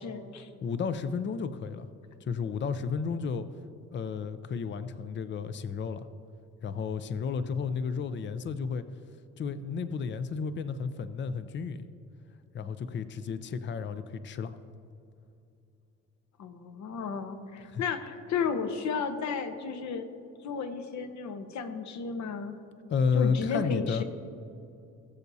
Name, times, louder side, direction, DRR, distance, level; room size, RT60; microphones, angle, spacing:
voice 1, 0.0-0.5 16.4-20.1 20.4-22.6 23.1-24.0, left 5 dB, 65° left, 8 dB, 1.0 m, -33 dB
voice 2, 0.6-1.9 2.2-3.5 3.9-6.1 6.6-8.8 9.4-11.8 12.5-14.6 17.7-17.8 22.9-24.0, left 5 dB, 40° left, 12 dB, 0.5 m, -32 dB
19.5 x 6.9 x 2.7 m, 2.6 s
cardioid pair, 90°, 30 cm